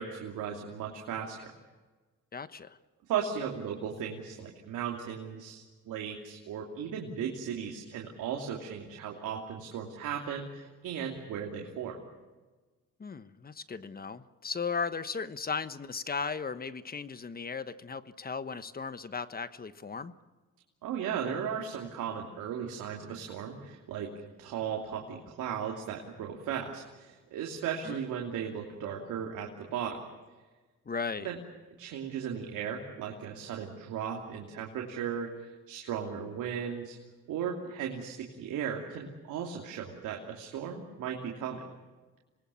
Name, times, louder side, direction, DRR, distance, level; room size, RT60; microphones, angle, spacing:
voice 1, 0.0-1.5 3.1-12.0 20.8-24.1 24.4-30.0 31.2-31.4 31.8-37.0 37.3-41.6, right 7 dB, 85° right, 0 dB, 2.9 m, -36 dB
voice 2, 2.3-2.8 13.0-20.1 27.8-28.0 30.8-31.3, left 5 dB, 30° left, 12 dB, 1.2 m, -36 dB
26.5 x 20.5 x 7.1 m, 1.3 s
cardioid pair, 90°, 30 cm